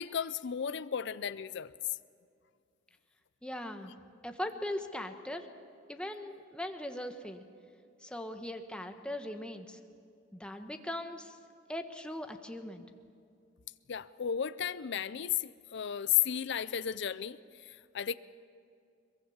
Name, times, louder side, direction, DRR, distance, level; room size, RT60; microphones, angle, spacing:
voice 1, 0.0-1.7 13.9-17.4 17.6-18.1, left 9 dB, 65° left, 0.5 m, -33 dB
voice 2, 3.4-3.9 4.2-5.5 5.9-7.4 8.0-9.8 10.3-11.4 11.7-12.8, left 1 dB, 5° left, 1.3 m, -40 dB
22.5 x 22.5 x 7.3 m
head